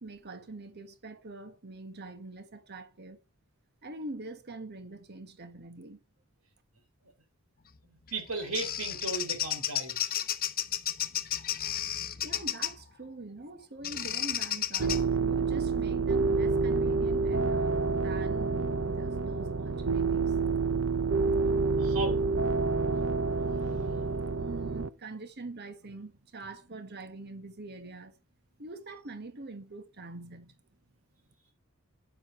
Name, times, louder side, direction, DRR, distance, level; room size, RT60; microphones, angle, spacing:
voice 1, 0.0-3.2 3.8-6.0 12.2-20.4 24.1-28.1 28.6-30.5, right 2 dB, 50° right, 1.3 m, -44 dB
voice 2, 7.8-10.0 21.8-22.2, right 3 dB, 80° right, 3.8 m, -35 dB
Bird vocalization bird call bird song, 8.1-12.8 13.8-15.0, left 11 dB, 45° left, 0.8 m, -32 dB
sound 1, 14.8-24.9, right 4 dB, 65° right, 0.7 m, -28 dB
8.7 x 8.0 x 6.0 m
head